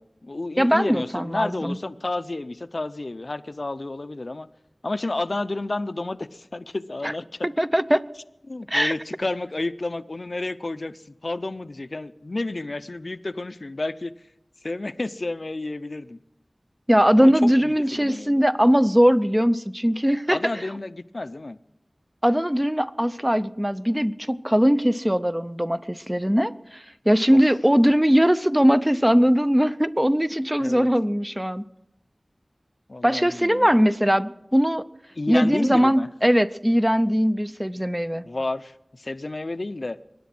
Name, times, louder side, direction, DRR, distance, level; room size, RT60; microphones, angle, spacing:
voice 1, 0.0-4.5 4.8-7.5 8.5-14.1 14.6-16.2 17.2-18.4 20.3-21.6 27.3-27.4 30.6-30.9 32.9-33.7 35.2-36.1 38.2-40.0, left 2 dB, 60° left, 13 dB, 0.6 m, -31 dB
voice 2, 0.6-1.8 7.0-7.1 7.4-8.0 8.7-8.9 16.9-20.4 22.2-31.6 33.0-34.9 35.3-38.2, equal, 10° right, 15 dB, 0.6 m, -20 dB
22.5 x 10.5 x 6.0 m, 0.88 s
wide cardioid pair, 45°, 0 cm